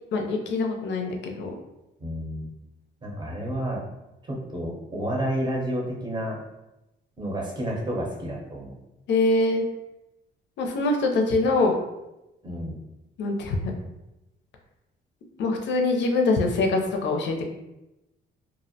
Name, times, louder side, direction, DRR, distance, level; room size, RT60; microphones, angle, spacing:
voice 1, 0.1-1.5 9.1-9.6 10.6-11.8 13.2-13.7 15.4-17.5, left 2 dB, 65° left, 3 dB, 0.5 m, -24 dB
voice 2, 2.0-2.5 3.0-3.8 4.2-6.4 7.2-8.7 12.4-12.8, equal, 20° right, -3 dB, 0.7 m, -30 dB
2.4 x 2.0 x 2.7 m, 0.95 s
cardioid pair, 90°, 20 cm